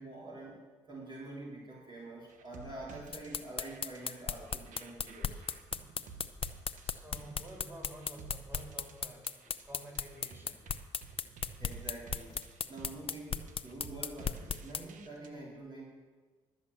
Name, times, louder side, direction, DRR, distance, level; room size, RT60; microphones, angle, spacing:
voice 1, 0.0-5.4 11.6-12.4 12.7-15.9, right 2 dB, 35° right, -5 dB, 3.5 m, -46 dB
sound 1, 2.3-15.3, right 5 dB, 75° right, 1.0 m, -53 dB
sound 2, 3.1-14.8, left 6 dB, 45° left, 0.7 m, -36 dB
voice 2, 6.8-9.3 9.6-10.7, right 1 dB, 15° right, 0 dB, 4.5 m, -50 dB
12.0 x 7.9 x 7.0 m, 1.4 s
supercardioid pair, 60°, 13 cm